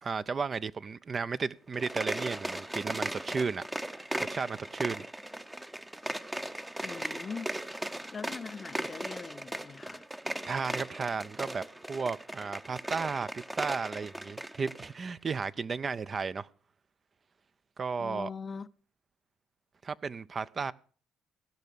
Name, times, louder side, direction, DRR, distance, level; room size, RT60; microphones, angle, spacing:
voice 1, 0.0-3.6 4.3-5.0 10.5-11.6 11.9-16.5 17.8-18.3 19.8-20.7, right 5 dB, 40° right, 0.5 m, -34 dB
sound 1, 1.7-14.9, right 1 dB, 10° right, 0.8 m, -38 dB
voice 2, 6.8-7.5 8.1-10.0 18.0-18.7, left 5 dB, 40° left, 0.5 m, -41 dB
16.0 x 5.8 x 8.3 m
hypercardioid pair, 55°, 0 cm